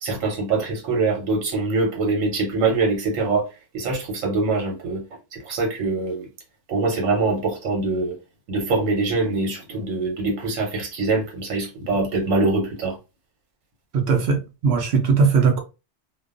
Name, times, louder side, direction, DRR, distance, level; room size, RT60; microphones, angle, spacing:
voice 1, 0.0-3.5 3.7-5.0 5.3-6.3 6.7-8.1 8.5-13.0, right 3 dB, 80° right, 1.2 m, -23 dB
voice 2, 13.9-15.6, right 5 dB, 60° right, 0.8 m, -19 dB
2.5 x 2.2 x 2.4 m
omnidirectional pair, 1.3 m